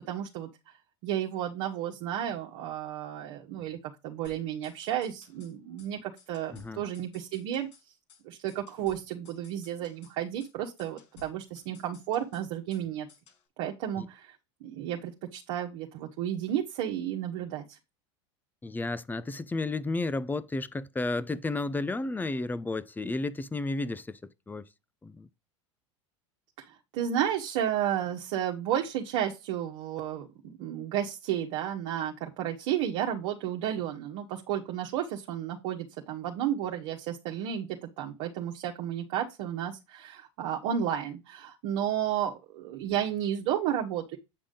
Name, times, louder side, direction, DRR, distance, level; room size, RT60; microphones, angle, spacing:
voice 1, 0.1-0.5 1.0-3.8 4.0-7.7 8.2-13.1 13.6-14.3 14.6-17.8 26.6-30.3 30.6-44.2, right 10 dB, 65° right, 1.3 m, -32 dB
sound 1, 4.2-5.5 5.8-5.9 6.2-7.8 8.1-8.2 8.5-10.1 10.4-10.5 10.8-12.8 13.1-13.4, left 5 dB, 80° left, 6.0 m, -57 dB
voice 2, 6.5-6.8 14.0-14.1 18.6-24.2 24.5-24.7 25.0-25.3, left 2 dB, 10° left, 0.7 m, -32 dB
8.7 x 5.1 x 3.8 m
hypercardioid pair, 90°, 16 cm